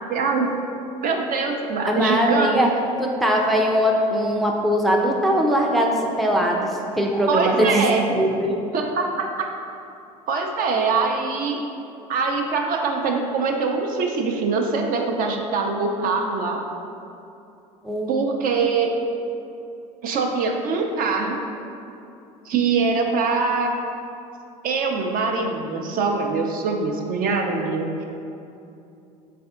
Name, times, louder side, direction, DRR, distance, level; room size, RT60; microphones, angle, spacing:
voice 1, 0.1-0.5 1.0-2.5 7.3-8.0 8.7-9.5 10.3-11.6 12.1-16.6 18.1-18.9 20.0-21.4 22.5-23.7 24.6-28.0, right 4 dB, 50° right, 2 dB, 0.5 m, -23 dB
voice 2, 1.9-2.7 3.0-8.6 10.6-10.7 17.8-18.1, equal, ahead, 0 dB, 0.4 m, -21 dB
3.4 x 3.4 x 3.6 m, 2.7 s
hypercardioid pair, 75°, 19 cm